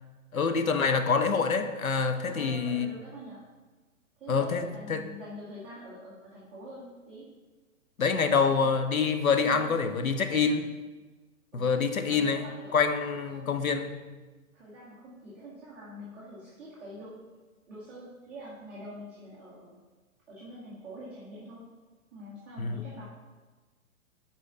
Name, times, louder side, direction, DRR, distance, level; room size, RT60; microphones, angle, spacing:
voice 1, 0.3-2.9 4.3-5.0 8.0-10.7 11.5-12.5 12.7-13.9 22.6-22.8, left 5 dB, 80° left, 8 dB, 0.8 m, -26 dB
voice 2, 2.3-3.4 4.2-7.2 8.2-8.7 9.4-10.1 11.5-11.8 12.1-12.8 13.3-13.5 14.5-17.1 17.7-19.7 20.3-21.6 22.1-23.0, equal, 5° right, -12 dB, 0.4 m, -45 dB
6.3 x 4.2 x 5.0 m, 1.3 s
figure-of-eight pair, 115°, 41 cm